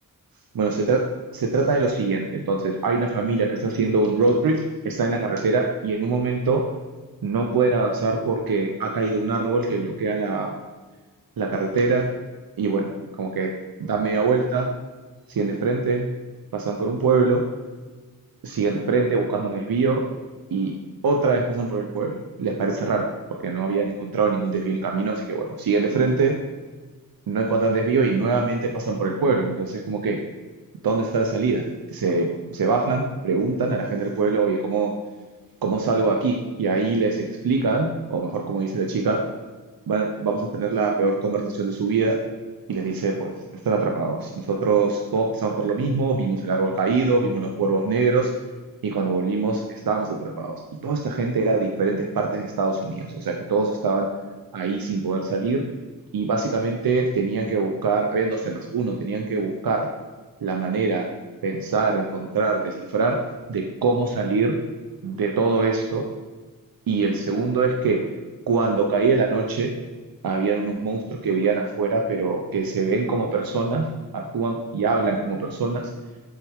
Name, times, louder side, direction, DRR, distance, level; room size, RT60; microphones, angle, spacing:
voice 1, 0.5-1.0 1.3-6.7 7.2-10.5 11.4-12.1 12.6-12.9 13.2-13.5 13.8-14.7 15.3-16.1 16.5-17.4 18.4-20.0 20.5-20.7 21.0-23.1 23.4-26.4 27.3-30.2 30.8-32.3 32.5-34.9 35.6-39.2 39.9-42.2 42.7-43.3 43.6-48.3 48.8-54.1 54.5-55.6 56.1-59.9 60.4-61.1 61.4-63.2 63.5-64.6 65.0-66.1 66.9-68.0 68.5-69.7 70.2-73.9 74.1-75.8, right 4 dB, 75° right, 2 dB, 0.9 m, -23 dB
8.0 x 7.9 x 3.7 m, 1.3 s
wide cardioid pair, 125°, 35 cm